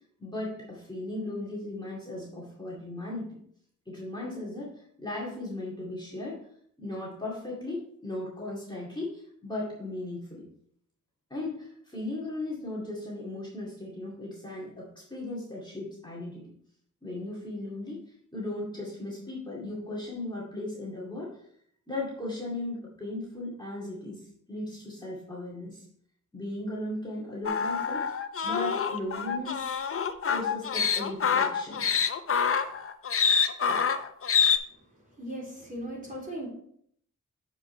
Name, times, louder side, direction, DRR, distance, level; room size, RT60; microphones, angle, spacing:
voice 1, 0.2-3.4 3.9-6.4 6.8-10.4 11.3-16.4 17.0-18.0 18.3-21.3 21.9-25.9 26.3-28.0 28.4-29.8 30.3-32.1, left 2 dB, 15° left, -6 dB, 2.2 m, -37 dB
sound 1, 27.4-34.6, left 6 dB, 45° left, 0.6 m, -26 dB
voice 2, 34.7-36.5, right 1 dB, 25° right, -4 dB, 3.4 m, -39 dB
7.3 x 5.2 x 4.3 m, 0.66 s
wide cardioid pair, 105°, 32 cm